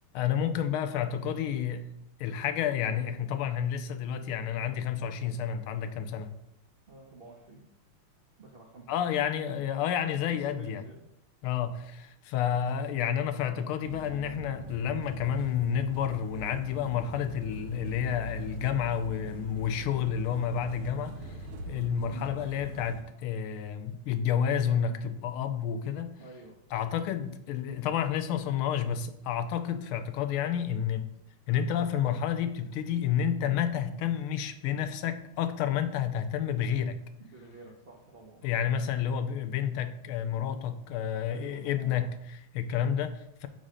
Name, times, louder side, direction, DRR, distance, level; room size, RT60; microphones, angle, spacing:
voice 1, 0.1-1.9 2.2-6.3 8.9-10.8 11.4-21.4 21.7-26.1 26.7-31.1 31.5-37.0 38.4-43.5, left 8 dB, 85° left, 10 dB, 1.5 m, -30 dB
voice 2, 6.9-7.6 8.4-8.9 10.3-11.1 12.5-12.7 22.1-22.4 26.2-26.6 37.2-38.5 41.3-42.1, right 3 dB, 65° right, -1 dB, 0.5 m, -49 dB
sound 1, 13.8-23.0, right 1 dB, 85° right, 1.7 m, -42 dB
6.5 x 3.9 x 4.9 m, 0.81 s
omnidirectional pair, 2.3 m